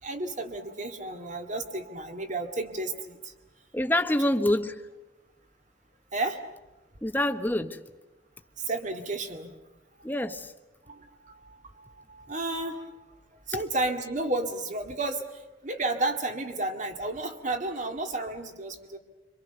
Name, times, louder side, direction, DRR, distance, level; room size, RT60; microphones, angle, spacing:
voice 1, 0.0-3.3 6.1-6.4 8.6-9.5 10.9-13.2 13.5-19.0, right 2 dB, 45° right, 2.2 m, -32 dB
voice 2, 3.7-4.8 7.0-7.8 10.0-10.5, left 1 dB, 10° left, 1.1 m, -26 dB
26.5 x 25.0 x 6.9 m
head